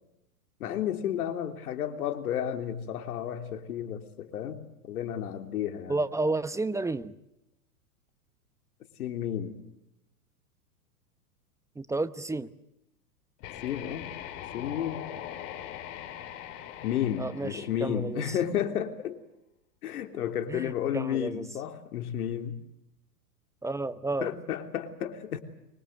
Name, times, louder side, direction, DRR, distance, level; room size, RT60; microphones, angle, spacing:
voice 1, 0.6-5.9 9.0-9.6 13.6-14.1 14.5-15.1 16.8-19.2 19.8-22.6 24.2-25.4, left 10 dB, 70° left, 8 dB, 3.3 m, -32 dB
voice 2, 5.9-7.1 11.8-12.5 17.2-18.3 20.5-21.5 23.6-24.3, right 2 dB, 5° right, 15 dB, 0.9 m, -31 dB
sound 1, 13.4-18.3, left 11 dB, 50° left, 4.6 m, -41 dB
24.5 x 21.5 x 7.9 m, 0.87 s
hypercardioid pair, 115°, 46 cm